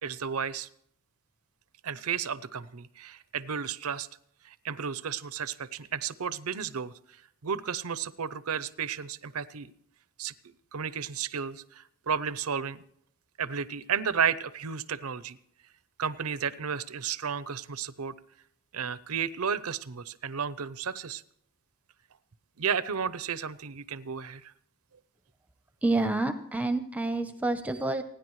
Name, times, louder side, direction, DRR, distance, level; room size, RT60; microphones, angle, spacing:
voice 1, 0.0-0.7 1.8-4.1 4.4-6.9 7.4-9.7 10.2-12.8 13.4-15.4 16.0-18.1 18.7-21.2 22.6-24.5, right 7 dB, 90° right, 17 dB, 0.7 m, -33 dB
voice 2, 25.8-28.0, right 2 dB, 5° right, 9 dB, 0.7 m, -28 dB
29.5 x 10.5 x 3.2 m, 0.72 s
head